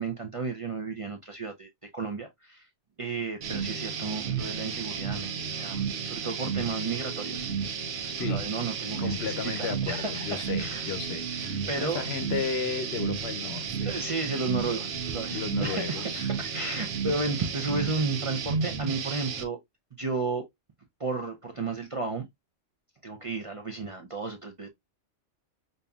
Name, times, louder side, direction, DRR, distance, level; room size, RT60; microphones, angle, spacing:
voice 1, 0.0-2.7 3.0-7.5 8.0-10.9 11.7-12.0 13.9-19.6 20.0-20.4 21.0-22.3 23.0-24.7, right 3 dB, 45° right, 0.4 m, -33 dB
sound 1, 3.4-19.4, right 6 dB, 75° right, 1.0 m, -32 dB
voice 2, 9.0-14.1 15.3-16.3, left 6 dB, 65° left, 0.8 m, -34 dB
5.3 x 2.6 x 2.3 m
omnidirectional pair, 1.3 m